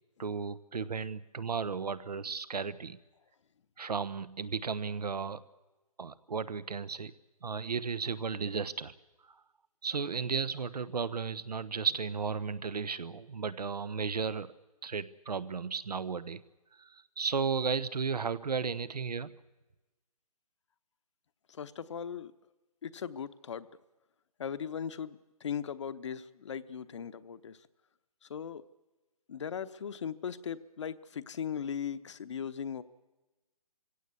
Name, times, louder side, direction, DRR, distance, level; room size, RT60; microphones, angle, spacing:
voice 1, 0.2-3.0 3.8-5.4 6.0-7.1 7.4-8.9 9.8-14.5 14.8-16.4 16.8-19.3, right 5 dB, 85° right, 16 dB, 1.1 m, -34 dB
voice 2, 21.5-22.3 22.8-23.7 24.4-27.6 28.2-28.6 29.3-32.8, left 7 dB, 50° left, 13 dB, 0.9 m, -38 dB
23.5 x 16.5 x 8.3 m, 1.1 s
hypercardioid pair, 160°, 20 cm